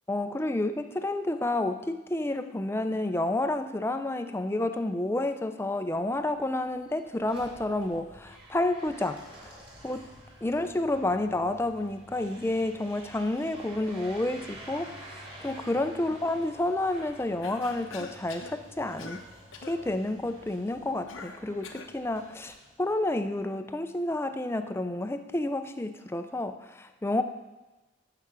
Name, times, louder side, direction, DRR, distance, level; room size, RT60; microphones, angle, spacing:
voice 1, 0.1-10.1 10.4-19.2 19.6-27.2, left 2 dB, 10° left, 8 dB, 0.4 m, -30 dB
sound 1, 5.9-23.4, equal, 25° right, 2.0 m, -50 dB
Cough, 17.4-18.6 19.0-19.3 19.5-19.8 21.1-22.0, left 4 dB, 85° left, 0.9 m, -43 dB
8.6 x 6.8 x 6.1 m, 1.1 s
head